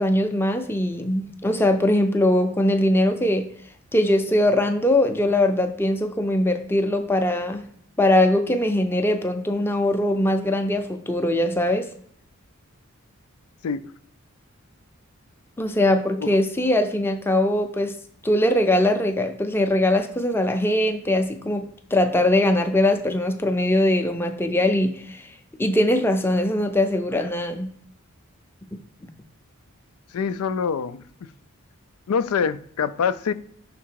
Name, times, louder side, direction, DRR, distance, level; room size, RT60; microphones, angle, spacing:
voice 1, 0.0-3.5 3.9-7.6 8.0-11.9 15.6-17.9 18.2-25.3 25.6-27.7 29.0-29.1, left 1 dB, 10° left, 0.5 m, -21 dB
voice 2, 30.1-31.0 32.1-33.3, left 6 dB, 85° left, 0.4 m, -25 dB
5.9 x 3.7 x 4.6 m
head